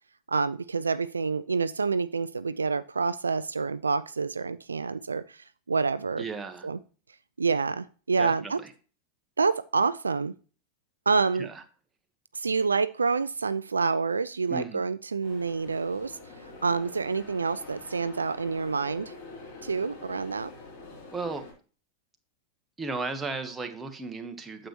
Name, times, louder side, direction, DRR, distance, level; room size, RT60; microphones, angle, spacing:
voice 1, 0.3-6.2 6.6-6.8 7.4-8.6 9.4-10.3 11.1-11.5 12.3-16.2 16.6-19.1 19.6-20.5, right 4 dB, 75° right, 15 dB, 0.3 m, -27 dB
voice 2, 6.2-6.7 8.2-8.7 11.4-11.6 14.5-14.8 21.1-21.4 22.8-24.7, right 3 dB, 10° right, 5 dB, 1.3 m, -35 dB
sound 1, 15.2-21.5, left 3 dB, 45° left, 4.2 m, -46 dB
8.9 x 7.6 x 3.1 m, 0.37 s
figure-of-eight pair, 90°, 0 cm